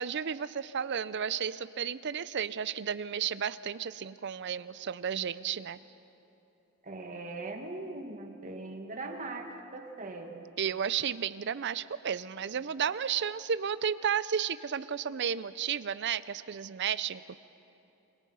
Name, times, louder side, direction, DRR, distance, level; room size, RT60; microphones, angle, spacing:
voice 1, 0.0-5.8 10.6-17.4, right 8 dB, 50° right, 15 dB, 0.5 m, -33 dB
voice 2, 6.8-10.5, right 2 dB, 35° right, 4 dB, 1.7 m, -40 dB
27.5 x 21.5 x 5.6 m, 2.9 s
head